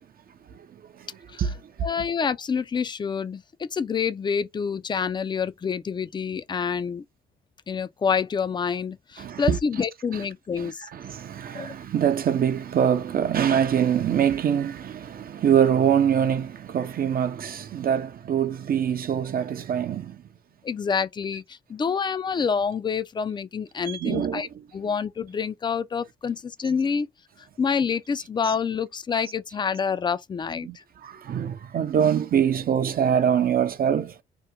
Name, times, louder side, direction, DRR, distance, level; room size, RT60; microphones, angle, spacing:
voice 1, 1.8-7.0 7.7-10.9 11.5-11.7 20.6-27.1 27.4-30.8, left 6 dB, 25° left, 0.4 m, -27 dB
voice 2, 9.2-9.6 10.6-20.2 23.9-24.5 30.6-30.8 31.0-34.2, right 8 dB, 50° right, 0.5 m, -24 dB
2.9 x 2.1 x 3.5 m
cardioid pair, 90°, 20 cm